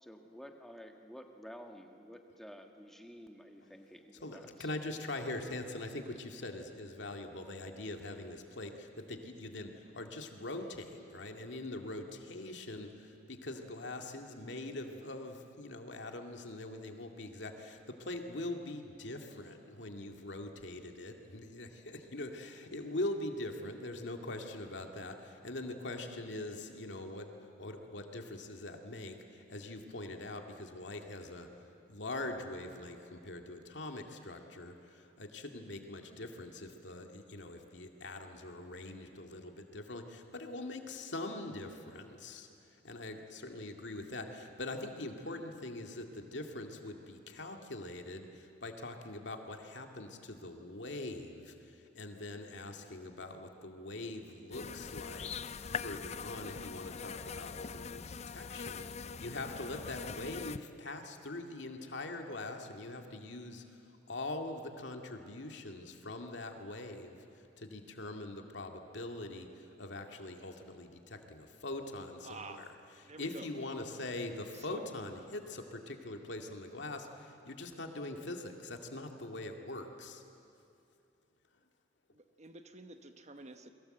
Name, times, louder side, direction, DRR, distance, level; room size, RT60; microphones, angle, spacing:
voice 1, 0.0-4.7 5.2-5.3, equal, ahead, 4 dB, 1.6 m, -51 dB
voice 2, 4.2-25.1 25.4-27.3 27.6-31.5 31.9-43.2 43.4-72.7 73.0-80.2, left 2 dB, 75° left, 4 dB, 2.2 m, -43 dB
sound 1, 54.5-60.6, left 6 dB, 35° left, 0.5 m, -42 dB
voice 3, 72.2-72.7 73.1-73.5 74.5-74.9 82.1-83.7, right 3 dB, 40° right, 8 dB, 1.1 m, -49 dB
29.0 x 22.0 x 7.9 m, 2.6 s
head